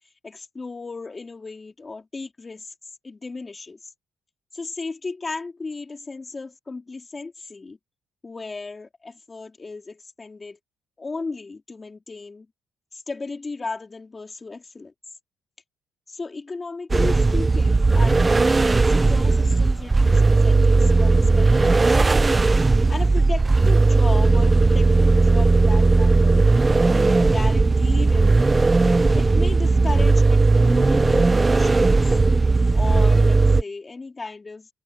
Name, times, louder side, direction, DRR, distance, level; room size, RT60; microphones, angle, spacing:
voice 1, 0.2-2.7 3.0-3.9 4.5-7.8 8.2-10.6 11.0-12.5 12.9-14.9 16.1-18.5 18.8-22.2 22.9-28.7 29.1-32.0 32.7-34.7, left 3 dB, 25° left, 4.4 m, -35 dB
sound 1, 16.9-33.6, right 3 dB, 25° right, 1.3 m, -17 dB
cardioid pair, 90°, 0 cm